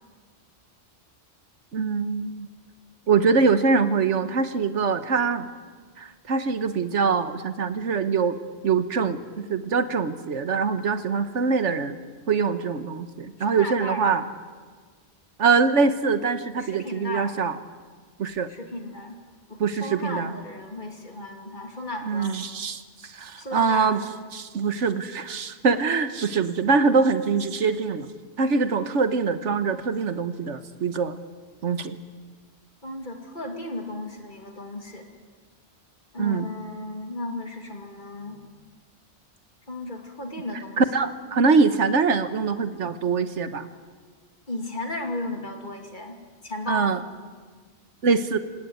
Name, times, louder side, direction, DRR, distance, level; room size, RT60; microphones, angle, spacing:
voice 1, 1.7-2.5 3.1-5.5 6.0-8.3 8.6-12.0 12.3-14.2 15.4-17.5 18.2-18.5 19.6-20.3 22.1-24.0 24.3-28.1 28.4-31.2 31.6-32.0 36.2-36.5 40.8-43.7 46.7-47.0 48.0-48.4, right 5 dB, 80° right, 12 dB, 1.5 m, -23 dB
voice 2, 13.4-14.1 16.6-17.4 18.5-22.4 23.4-23.9 32.8-35.1 36.1-38.5 39.7-40.8 44.5-46.9, left 2 dB, 40° left, 4 dB, 2.9 m, -35 dB
27.5 x 17.0 x 9.5 m, 1.5 s
omnidirectional pair, 1.2 m